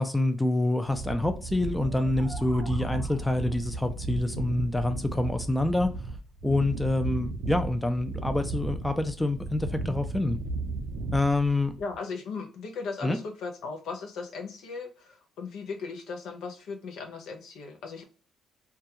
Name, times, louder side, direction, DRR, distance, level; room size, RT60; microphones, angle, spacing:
voice 1, 0.0-5.9 6.4-10.4 11.1-11.7 13.0-13.2, left 2 dB, 10° left, 8 dB, 0.4 m, -27 dB
sound 1, 0.8-12.0, right 2 dB, 90° right, 0.4 m, -35 dB
sound 2, 1.8-3.6, right 1 dB, 20° right, 0.7 m, -47 dB
voice 2, 11.8-18.0, left 4 dB, 80° left, 3 dB, 0.6 m, -37 dB
2.3 x 2.2 x 2.7 m, 0.38 s
cardioid pair, 80°, 0 cm